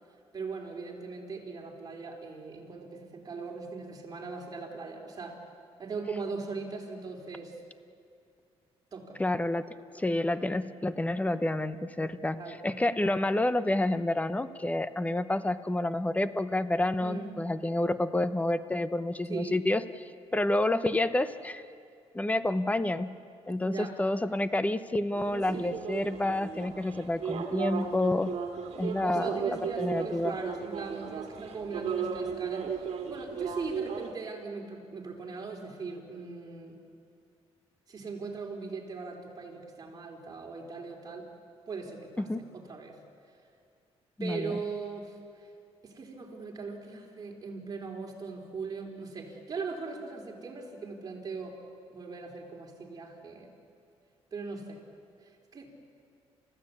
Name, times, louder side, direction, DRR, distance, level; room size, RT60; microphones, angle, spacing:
voice 1, 0.3-5.4 5.8-7.6 8.9-9.2 9.9-10.1 12.4-12.6 17.0-17.4 19.3-19.6 23.6-24.0 25.5-25.7 28.8-36.8 37.9-41.3 41.7-43.0 44.2-45.5 45.8-51.6 51.9-53.5 54.3-54.8 55.2-55.7, right 4 dB, 35° right, 0 dB, 4.0 m, -39 dB
voice 2, 9.2-19.8 20.3-21.6 22.1-23.2 23.5-28.4 28.8-30.4 42.2-42.4 44.2-44.6, left 1 dB, 15° left, 13 dB, 0.8 m, -29 dB
sound 1, 25.2-34.1, right 7 dB, 70° right, 2.0 m, -36 dB
29.5 x 15.0 x 8.5 m, 2.4 s
cardioid pair, 110°, 11 cm